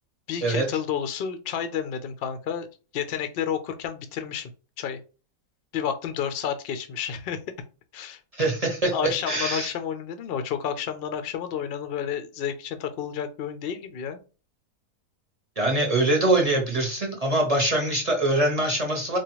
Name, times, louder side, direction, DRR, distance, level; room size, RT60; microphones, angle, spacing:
voice 1, 0.3-2.7 2.9-4.5 4.8-5.0 5.7-7.4 7.9-8.2 8.9-14.2, left 8 dB, 70° left, 8 dB, 0.5 m, -30 dB
voice 2, 8.3-8.9 9.3-9.7 15.6-19.2, right 1 dB, 30° right, -1 dB, 0.7 m, -23 dB
4.4 x 2.4 x 3.0 m, 0.33 s
omnidirectional pair, 1.7 m